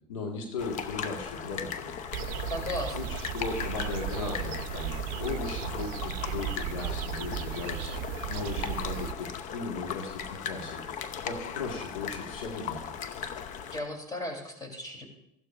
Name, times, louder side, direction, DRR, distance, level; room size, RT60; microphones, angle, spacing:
voice 1, 0.1-1.9 2.9-8.0 8.3-10.8 11.2-12.8, left 4 dB, 85° left, 1 dB, 1.8 m, -37 dB
sound 1, 0.6-13.8, left 7 dB, 50° left, 0.8 m, -38 dB
sound 2, 2.1-9.1, right 13 dB, 55° right, 0.5 m, -35 dB
voice 2, 2.5-3.1 13.7-15.1, left 1 dB, 25° left, 3 dB, 3.3 m, -36 dB
14.5 x 12.0 x 2.6 m, 0.83 s
hypercardioid pair, 90°, 17 cm